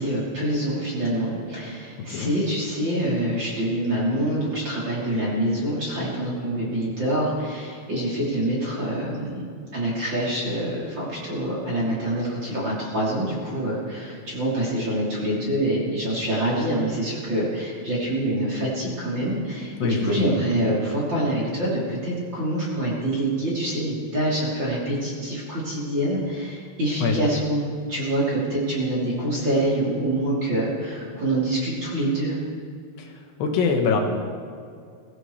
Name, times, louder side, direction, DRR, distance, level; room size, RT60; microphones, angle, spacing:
voice 1, 0.0-9.5 9.7-32.4, right 1 dB, 30° right, -7 dB, 3.3 m, -26 dB
voice 2, 19.8-20.3 27.0-27.2 33.0-33.1 33.4-34.0, left 5 dB, 75° left, 2 dB, 3.1 m, -23 dB
22.0 x 15.5 x 3.2 m, 2.2 s
omnidirectional pair, 5.0 m